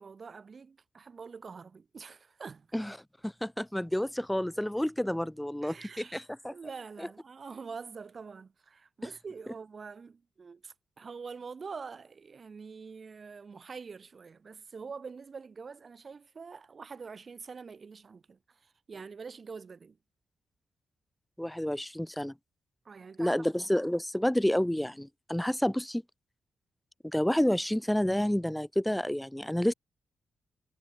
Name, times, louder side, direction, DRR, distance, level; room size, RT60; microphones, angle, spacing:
voice 1, 0.0-2.7 5.6-6.2 6.4-20.0 22.8-23.4, right 5 dB, 45° right, 6.8 m, -45 dB
voice 2, 3.2-6.5 7.0-7.1 21.4-22.3 23.2-26.0 27.0-29.7, left 1 dB, 5° left, 3.1 m, -29 dB
cardioid pair, 100°, 0 cm